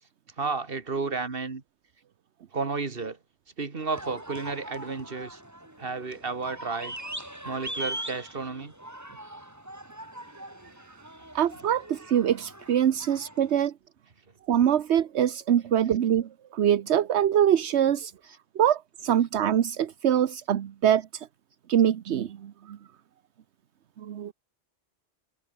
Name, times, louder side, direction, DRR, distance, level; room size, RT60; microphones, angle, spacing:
voice 1, 0.4-1.6 2.5-3.2 3.6-5.4 5.8-7.0 7.4-8.7 18.2-18.4, right 4 dB, 55° right, 2.1 m, -32 dB
sound 1, 3.9-13.6, right 1 dB, 15° right, 3.2 m, -41 dB
voice 2, 11.3-13.7 14.5-18.1 18.5-21.3 21.7-22.8 24.0-24.3, right 10 dB, 75° right, 1.1 m, -24 dB
omnidirectional pair, 1.2 m